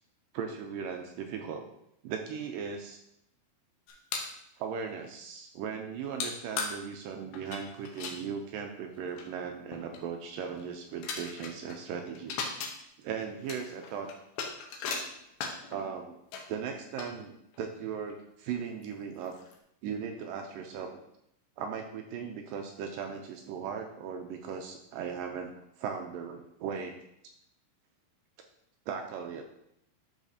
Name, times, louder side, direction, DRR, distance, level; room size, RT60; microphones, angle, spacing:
voice 1, 0.3-1.7 2.0-3.0 4.6-12.4 13.0-14.1 15.7-16.2 16.5-19.4 19.8-21.0 21.6-27.0 28.9-29.4, right 7 dB, 80° right, 3 dB, 2.1 m, -38 dB
sound 1, 3.9-4.4 6.2-6.3 6.6-6.7 7.3-8.2 8.9-9.0 9.2-9.3 9.7-10.0 10.6-10.7 11.0-11.8 12.1-12.7 13.2-15.8 16.3-16.4 17.0-17.6 18.1-18.2 18.8-18.9 19.2-19.6, left 5 dB, 80° left, 2.8 m, -37 dB
12.0 x 4.1 x 2.7 m, 0.78 s
omnidirectional pair, 4.3 m